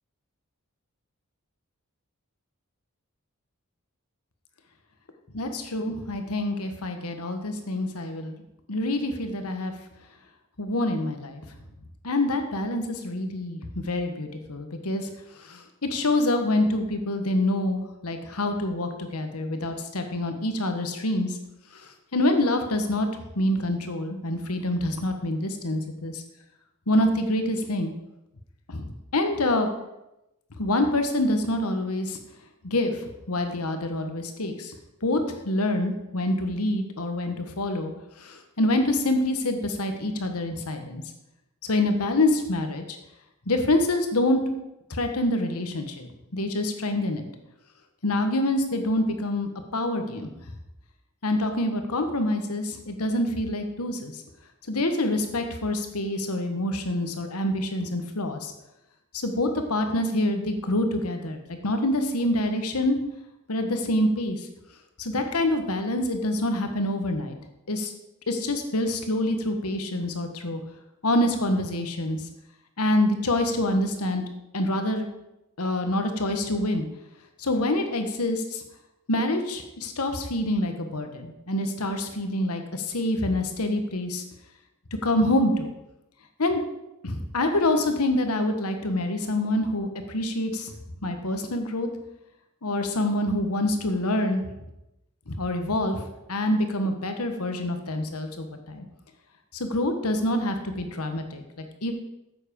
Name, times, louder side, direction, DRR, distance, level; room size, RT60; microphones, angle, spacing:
voice 1, 5.3-8.4 8.7-9.7 10.6-11.4 12.0-21.4 21.7-23.1 23.3-26.2 26.9-27.9 28.7-29.7 30.6-32.2 32.6-34.7 35.0-37.9 38.2-41.0 41.6-43.0 43.5-44.4 44.9-47.3 48.0-50.3 51.2-54.2 54.7-58.5 59.1-63.0 63.5-64.5 65.0-67.4 67.7-67.9 68.3-70.6 71.0-72.2 72.8-74.2 74.5-75.1 75.6-76.9 77.4-78.6 79.1-84.2 85.0-85.7 86.4-86.6 87.0-90.7 91.0-91.9 92.6-94.5 95.3-98.8 99.5-101.9, left 1 dB, 80° left, 6 dB, 1.3 m, -26 dB
9.5 x 7.4 x 5.3 m, 0.90 s
head